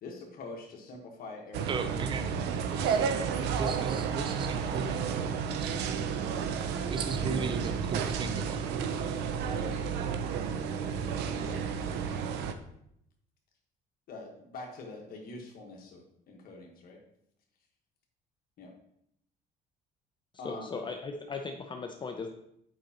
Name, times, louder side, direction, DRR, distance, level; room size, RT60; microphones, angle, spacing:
voice 1, 0.0-1.9 7.2-7.5 11.4-11.6 14.1-17.0 18.6-18.7 20.4-20.8, left 2 dB, 60° left, 1 dB, 1.3 m, -44 dB
sound 1, 1.5-12.5, right 6 dB, 85° right, 0.5 m, -31 dB
voice 2, 1.7-2.3 2.8-5.1 5.5-5.8 6.9-9.2, right 4 dB, 30° right, 10 dB, 0.5 m, -37 dB
voice 3, 20.4-22.3, left 4 dB, 30° left, 4 dB, 0.5 m, -37 dB
7.8 x 5.2 x 2.9 m, 0.74 s
cardioid pair, 110°, 17 cm